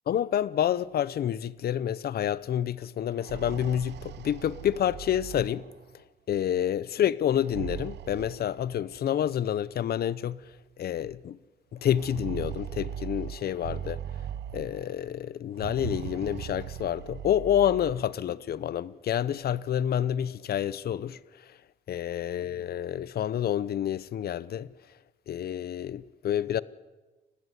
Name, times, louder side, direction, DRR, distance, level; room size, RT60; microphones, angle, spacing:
voice 1, 0.1-5.7 6.3-10.4 10.8-11.4 11.7-14.0 14.5-21.2 21.9-24.7 25.3-26.6, left 10 dB, 65° left, 0.8 m, -28 dB
sound 1, 3.0-5.9 7.3-9.0 10.0-10.1 10.4-10.5 11.8-14.9 15.5-18.1, right 10 dB, 80° right, 0.9 m, -39 dB
29.0 x 15.5 x 9.4 m
cardioid pair, 115°, 17 cm